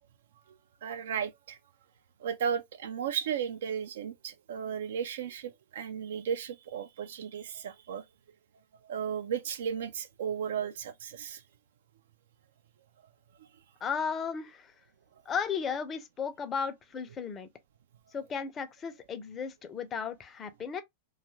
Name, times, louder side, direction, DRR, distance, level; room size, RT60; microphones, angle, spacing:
voice 1, 0.8-1.6 2.2-8.0 8.8-11.4 13.4-13.5, right 8 dB, 60° right, 0.4 m, -35 dB
voice 2, 13.8-14.7 15.3-17.5 18.1-20.8, left 6 dB, 25° left, 0.5 m, -35 dB
2.6 x 2.3 x 2.9 m
figure-of-eight pair, 90°, 0 cm